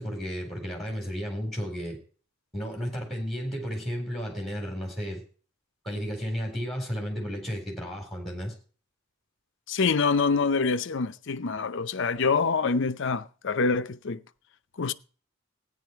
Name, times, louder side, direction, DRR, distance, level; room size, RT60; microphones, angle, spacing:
voice 1, 0.0-2.0 2.5-5.2 5.8-8.5, equal, ahead, 3.9 m, -33 dB
voice 2, 9.7-14.2 14.8-14.9, left 4 dB, 60° left, 0.6 m, -26 dB
15.0 x 9.9 x 4.6 m
head